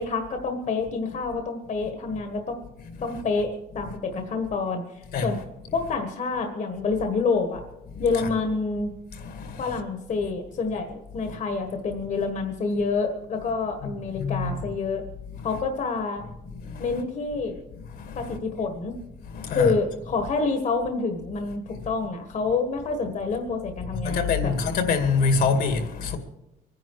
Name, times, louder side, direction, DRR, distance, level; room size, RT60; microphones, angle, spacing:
voice 1, 0.0-2.6 3.0-5.4 5.7-7.6 8.0-8.9 9.6-15.0 15.4-16.2 16.8-17.6 18.1-19.0 19.5-24.5, left 4 dB, 45° left, 1.6 m, -27 dB
voice 2, 7.9-8.3 9.1-9.8 11.3-11.4 13.8-13.9 14.1-14.5 15.4-15.5 16.6-16.9 17.9-18.4 19.3-19.7 23.9-26.2, left 4 dB, 65° left, 2.1 m, -26 dB
23.5 x 10.5 x 4.8 m
cardioid pair, 110°, 17 cm